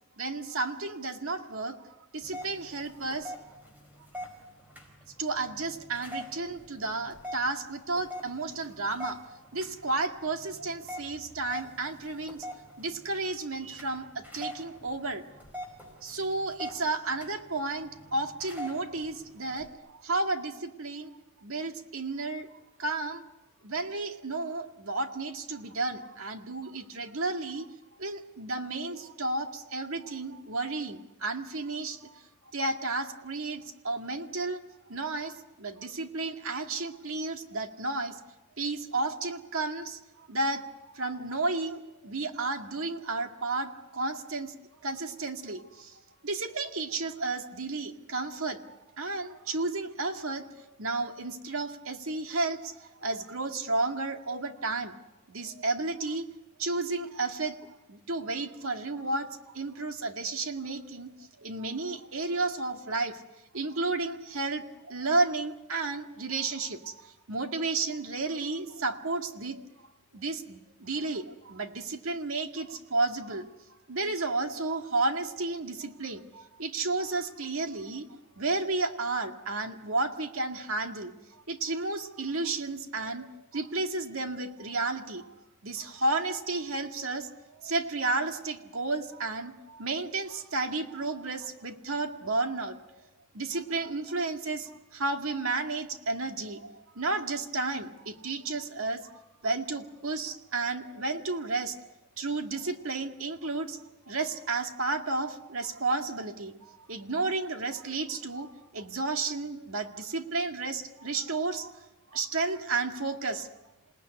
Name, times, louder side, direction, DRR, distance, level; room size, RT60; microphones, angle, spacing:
voice 1, 0.2-1.8 2.1-3.3 5.2-9.2 9.5-15.2 16.0-21.1 21.4-22.5 22.8-23.2 23.6-27.7 28.0-32.2 32.5-34.6 34.9-38.2 38.6-40.0 40.3-40.6 40.9-44.5 44.8-55.0 55.3-56.3 56.6-59.3 59.5-61.1 61.4-63.2 63.5-69.6 70.1-73.5 73.9-78.1 78.4-85.3 85.6-87.3 87.6-92.8 93.3-101.8 102.2-111.9 112.1-113.5, right 3 dB, 75° right, 5 dB, 2.0 m, -32 dB
sound 1, 2.2-19.7, equal, 10° right, 4.7 m, -45 dB
27.5 x 18.5 x 9.8 m, 1.1 s
head